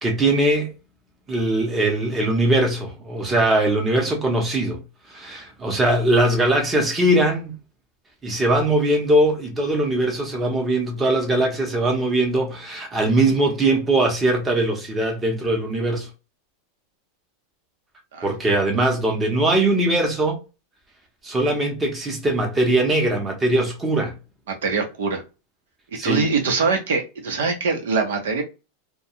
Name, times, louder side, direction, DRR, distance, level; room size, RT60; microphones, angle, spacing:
voice 1, 0.0-0.7 1.3-4.8 5.1-7.5 8.2-16.1 18.2-20.4 21.2-24.1 26.0-26.2, right 1 dB, 15° right, 0.8 m, -21 dB
voice 2, 24.6-25.2 26.0-28.4, right 4 dB, 90° right, 0.9 m, -23 dB
2.3 x 2.2 x 2.9 m
supercardioid pair, 150°, 0 cm